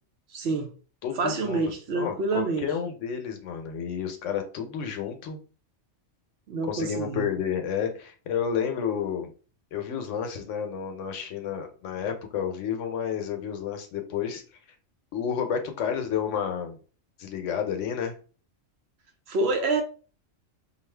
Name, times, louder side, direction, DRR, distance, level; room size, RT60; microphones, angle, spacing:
voice 1, 0.3-0.7 1.2-2.7 6.5-7.3 19.3-19.8, right 3 dB, 65° right, 0.8 m, -27 dB
voice 2, 1.0-5.4 6.7-9.3 9.7-14.4 15.1-16.8 17.2-18.2, left 7 dB, 75° left, 1.0 m, -30 dB
2.6 x 2.4 x 3.2 m
omnidirectional pair, 1.3 m